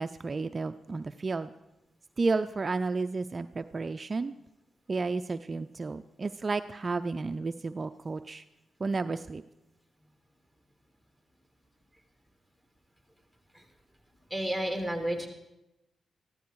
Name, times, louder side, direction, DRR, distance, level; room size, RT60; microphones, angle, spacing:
voice 1, 0.0-1.5 2.2-4.3 4.9-8.4 8.8-9.4, right 3 dB, 40° right, 10 dB, 0.5 m, -32 dB
voice 2, 14.3-15.3, right 1 dB, 10° left, 4 dB, 3.1 m, -31 dB
14.5 x 13.0 x 4.7 m, 0.93 s
supercardioid pair, 55°, 0 cm